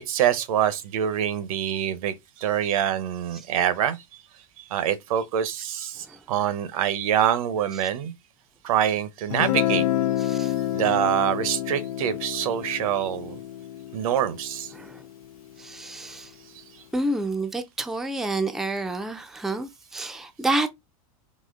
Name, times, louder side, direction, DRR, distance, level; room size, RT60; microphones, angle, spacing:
voice 1, 0.0-4.0 4.7-8.1 8.6-9.8 10.7-13.4 13.9-14.7, right 10 dB, 75° right, 0.8 m, -25 dB
Guitar, 9.3-15.1, left 12 dB, 85° left, 0.4 m, -28 dB
voice 2, 10.2-10.5 14.7-15.0 15.6-16.3 16.9-20.7, right 2 dB, ahead, 0.4 m, -29 dB
4.2 x 2.9 x 3.7 m
supercardioid pair, 135°, 18 cm